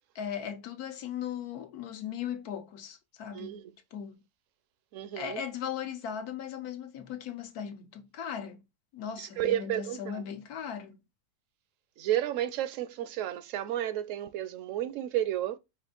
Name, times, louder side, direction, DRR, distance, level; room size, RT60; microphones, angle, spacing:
voice 1, 0.1-3.6 3.9-4.2 5.2-8.6 8.9-11.0, left 8 dB, 85° left, 1.3 m, -38 dB
voice 2, 3.3-3.7 4.9-5.4 9.2-10.2 12.0-15.6, right 12 dB, 70° right, 0.8 m, -32 dB
5.1 x 2.5 x 3.7 m
omnidirectional pair, 1.6 m